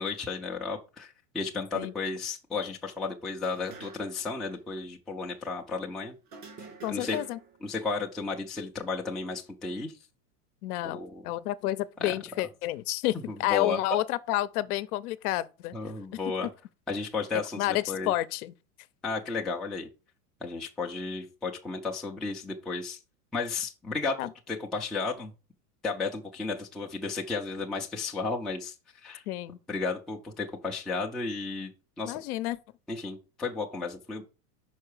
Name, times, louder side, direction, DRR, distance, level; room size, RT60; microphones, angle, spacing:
voice 1, 0.0-6.2 6.9-7.2 7.6-9.9 10.8-11.2 12.0-12.2 13.3-13.8 15.7-16.5 16.9-18.1 19.0-19.9 20.4-23.0 23.3-24.2 24.5-25.3 25.8-28.7 29.0-29.2 29.7-31.7 32.0-32.2 32.9-34.2, left 4 dB, ahead, 0.4 m, -33 dB
sound 1, 3.4-4.3 4.5-4.6 6.3-7.6, right 3 dB, 85° right, 3.1 m, -46 dB
voice 2, 6.8-7.4 10.6-15.8 17.6-18.5 24.2-24.3 29.3-29.6 32.0-32.6, left 16 dB, 70° left, 0.7 m, -30 dB
5.7 x 4.5 x 4.8 m
supercardioid pair, 130°, 46 cm